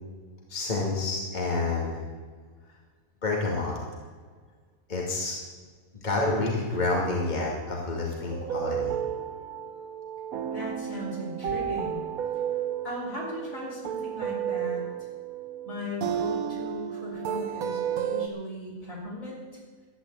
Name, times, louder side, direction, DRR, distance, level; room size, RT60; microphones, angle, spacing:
voice 1, 0.5-2.0 3.2-3.8 4.9-5.4 6.0-9.0, left 3 dB, 30° left, -2 dB, 2.5 m, -28 dB
sound 1, 8.3-18.3, right 9 dB, 90° right, 1.3 m, -32 dB
voice 2, 10.5-12.0 12.8-14.8 15.6-19.4, left 1 dB, 70° left, -3 dB, 4.9 m, -37 dB
13.0 x 10.0 x 8.2 m, 1.5 s
omnidirectional pair, 1.5 m